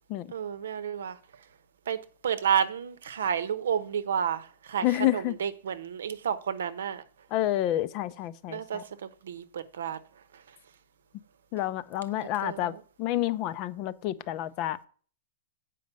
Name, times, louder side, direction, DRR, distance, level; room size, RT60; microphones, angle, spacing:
voice 1, 0.3-1.2 1.9-7.0 8.5-10.0 12.4-12.8, right 8 dB, 85° right, 0.9 m, -31 dB
voice 2, 4.8-5.3 7.3-8.8 11.5-12.7 13.0-14.8, left 14 dB, 30° left, 0.5 m, -29 dB
8.4 x 5.2 x 6.9 m
supercardioid pair, 170°, 0 cm